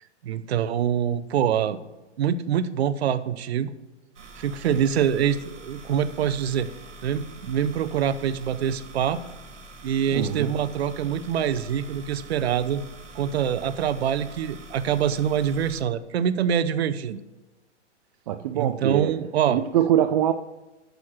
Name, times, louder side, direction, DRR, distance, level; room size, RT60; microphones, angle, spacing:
voice 1, 0.2-1.8 2.2-3.7 4.4-6.7 7.0-9.2 9.8-12.8 13.1-17.2 18.5-19.6, right 8 dB, 60° right, 14 dB, 0.7 m, -25 dB
sound 1, 4.1-15.8, right 2 dB, 80° right, 1.8 m, -45 dB
voice 2, 10.1-10.5 18.3-19.2 19.5-20.3, right 11 dB, 35° right, 9 dB, 0.4 m, -23 dB
9.3 x 6.6 x 5.8 m, 1.1 s
figure-of-eight pair, 115°, 36 cm